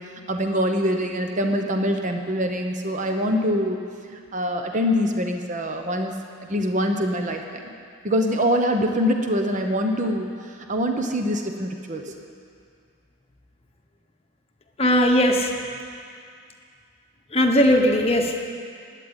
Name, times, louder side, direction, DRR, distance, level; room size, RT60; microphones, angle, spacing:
voice 1, 0.0-3.8 4.1-6.1 6.4-7.7 8.0-12.1, equal, 35° right, 4 dB, 0.9 m, -24 dB
voice 2, 14.8-15.5 17.3-18.4, equal, 30° left, 2 dB, 1.1 m, -18 dB
11.5 x 9.2 x 9.0 m, 2.3 s
head